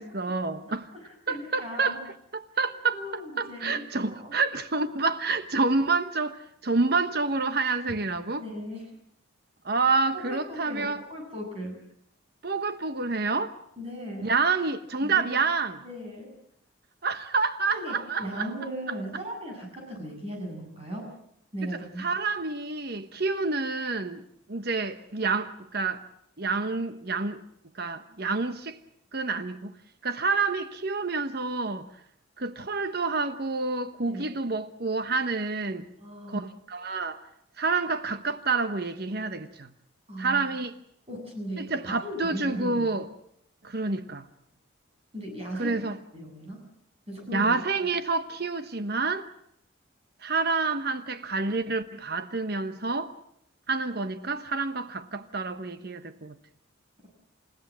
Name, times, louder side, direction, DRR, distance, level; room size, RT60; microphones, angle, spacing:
voice 1, 0.0-0.9 1.3-2.0 2.3-3.0 3.4-8.4 9.6-11.0 12.4-13.6 14.2-15.8 17.0-18.5 22.0-24.2 24.5-26.0 26.4-27.4 27.8-28.8 29.1-29.7 30.0-31.9 32.4-35.9 36.3-37.2 37.6-39.7 40.2-40.7 41.6-43.1 43.6-44.2 45.6-46.0 47.3-49.3 50.2-53.1 53.7-56.4, right 4 dB, 50° right, 1.1 m, -28 dB
voice 2, 0.9-2.0 2.9-4.4 8.4-8.9 10.1-11.8 13.8-14.3 15.0-15.3 15.8-16.3 17.7-21.1 21.5-22.1 34.1-34.3 36.0-36.5 40.1-40.5 41.1-42.9 45.1-45.8 46.1-46.7 47.1-47.5, equal, 30° right, 7.8 m, -37 dB
29.5 x 17.0 x 7.5 m
head